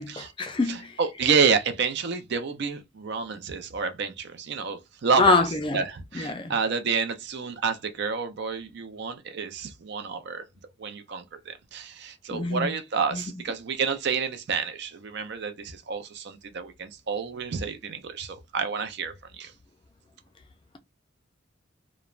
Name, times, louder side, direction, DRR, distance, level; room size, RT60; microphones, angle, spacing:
voice 1, 0.0-0.9 5.2-5.8 6.1-6.5 12.3-12.7 13.1-13.2, left 3 dB, 25° left, 0.3 m, -25 dB
voice 2, 0.7-5.4 5.7-10.4 10.8-19.5, right 5 dB, 60° right, 0.5 m, -29 dB
3.1 x 2.1 x 2.4 m
head